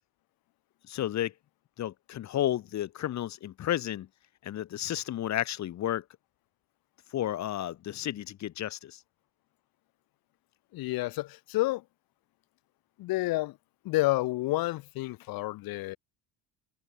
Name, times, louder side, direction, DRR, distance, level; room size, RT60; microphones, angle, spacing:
voice 1, 0.8-1.3 1.8-4.1 4.4-6.0 7.1-9.0, left 12 dB, 45° left, 2.9 m, -32 dB
voice 2, 10.7-11.8 13.0-13.5 13.8-16.0, left 18 dB, 65° left, 4.6 m, -29 dB
cardioid pair, 135°, 38 cm